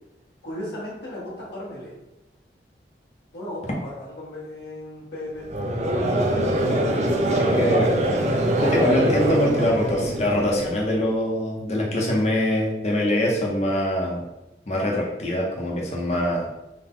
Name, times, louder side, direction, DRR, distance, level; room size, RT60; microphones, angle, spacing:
voice 1, 0.4-1.9 3.3-5.4, left 1 dB, 80° left, -7 dB, 1.4 m, -35 dB
Conversation / Crowd, 5.5-10.8, right 1 dB, 40° right, 0.4 m, -23 dB
voice 2, 7.5-7.9 8.6-14.2 14.7-16.5, left 1 dB, 35° left, -2 dB, 0.7 m, -23 dB
3.7 x 2.2 x 3.7 m, 0.96 s
head